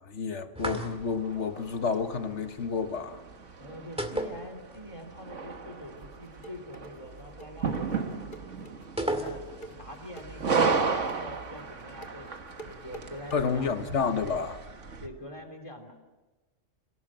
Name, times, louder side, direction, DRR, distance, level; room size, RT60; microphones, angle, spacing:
voice 1, 0.0-3.2 13.3-14.6, left 5 dB, 65° left, 1.6 m, -30 dB
sound 1, 0.6-1.3 4.0-5.0 5.3-5.4 9.0-9.8, right 1 dB, 5° right, 2.1 m, -33 dB
sound 2, 0.6-15.1, right 5 dB, 70° right, 1.8 m, -35 dB
voice 2, 3.6-8.2 9.0-9.4 9.7-10.9 11.2-13.8 15.0-15.9, left 1 dB, 25° left, 3.2 m, -44 dB
sound 3, 6.0-13.4, right 2 dB, 40° left, 1.4 m, -48 dB
28.0 x 18.0 x 7.5 m
omnidirectional pair, 1.3 m